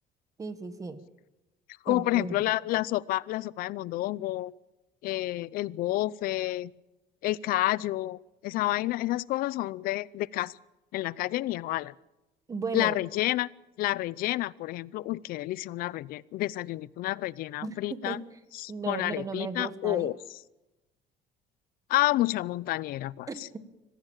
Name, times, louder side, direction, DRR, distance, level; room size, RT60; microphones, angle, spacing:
voice 1, 0.4-1.0 1.9-2.4 12.5-13.0 17.6-18.2 18.7-20.2 23.3-23.6, right 4 dB, 20° right, 10 dB, 1.6 m, -35 dB
voice 2, 1.9-4.5 5.0-6.7 7.2-10.5 10.9-11.9 12.7-13.5 13.8-18.2 18.6-20.1 21.9-23.3, left 16 dB, 65° left, 21 dB, 0.6 m, -29 dB
24.5 x 15.5 x 7.3 m, 0.98 s
cardioid pair, 150°, 16 cm